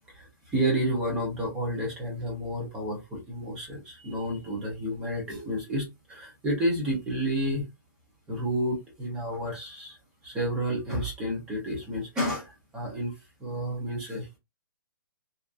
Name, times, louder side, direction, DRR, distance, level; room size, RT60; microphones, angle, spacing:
voice 1, 0.1-7.6 8.3-10.0 10.2-13.1 13.4-14.4, equal, 5° right, 0.4 m, -30 dB
2.6 x 2.2 x 2.3 m
hypercardioid pair, 175°, 12 cm